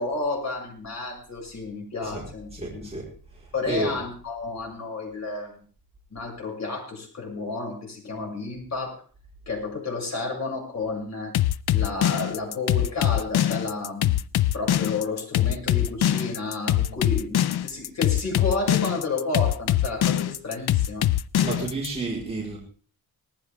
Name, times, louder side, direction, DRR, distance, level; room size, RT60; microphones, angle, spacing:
voice 1, 0.0-2.9 3.5-5.6 6.1-9.0 9.5-11.4 11.7-14.2 14.5-21.1, left 3 dB, 45° left, -1 dB, 6.9 m, -31 dB
voice 2, 2.5-3.1 3.7-3.9 21.4-22.6, right 3 dB, 15° right, -4 dB, 4.4 m, -30 dB
sound 1, 11.3-21.9, left 12 dB, 80° left, 0.6 m, -23 dB
19.0 x 15.0 x 3.5 m, 0.41 s
wide cardioid pair, 160°, 38 cm